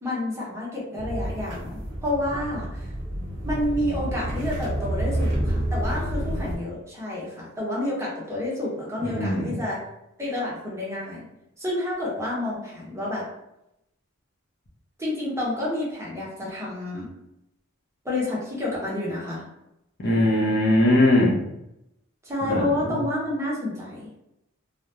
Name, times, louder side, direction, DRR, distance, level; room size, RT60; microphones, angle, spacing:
voice 1, 0.0-2.8 3.4-9.8 10.2-11.2 11.6-13.2 15.0-17.1 18.0-19.4 22.2-24.2, left 1 dB, 15° right, -6 dB, 0.8 m, -29 dB
sound 1, 1.0-6.6, right 1 dB, 55° right, 0.8 m, -29 dB
voice 2, 9.0-9.6 20.0-21.3 22.4-23.0, left 1 dB, 50° left, -3 dB, 0.6 m, -21 dB
2.3 x 2.1 x 2.9 m, 0.85 s
head